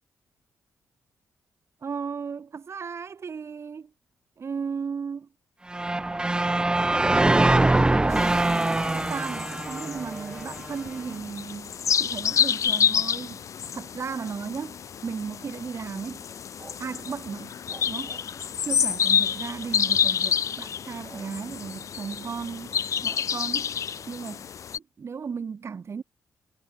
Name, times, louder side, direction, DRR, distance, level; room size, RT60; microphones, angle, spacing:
voice 1, 1.8-3.9 4.4-5.3 7.1-13.4 13.7-16.3 16.8-18.2 18.6-23.7 24.1-24.5 25.0-26.0, right 6 dB, 45° right, 0.7 m, -35 dB
sound 1, 5.7-10.7, right 2 dB, 15° right, 0.5 m, -23 dB
sound 2, 8.1-24.8, left 8 dB, 60° left, 0.4 m, -29 dB
sound 3, 16.3-18.6 19.3-20.2 20.8-21.4 21.7-23.1 23.9-24.2, right 3 dB, 30° right, 6.8 m, -53 dB
cardioid pair, 70°, 6 cm